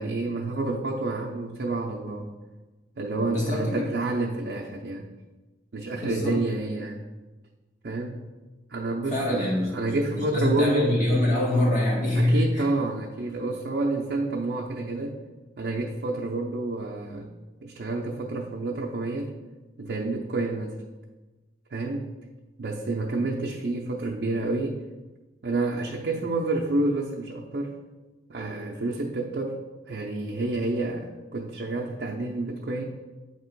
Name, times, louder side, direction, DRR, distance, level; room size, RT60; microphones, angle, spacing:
voice 1, 0.0-2.3 3.0-5.1 5.7-7.0 7.8-8.3 8.7-11.0 12.2-15.2 15.6-17.3 17.6-19.3 19.8-20.8 21.7-22.1 22.6-24.8 25.4-27.8 28.3-32.8, right 2 dB, 60° right, -2 dB, 0.5 m, -29 dB
voice 2, 3.3-3.9 6.1-6.4 7.8-7.9 9.1-12.6, left 1 dB, 40° left, -5 dB, 1.6 m, -25 dB
8.0 x 3.0 x 4.5 m, 1.2 s
head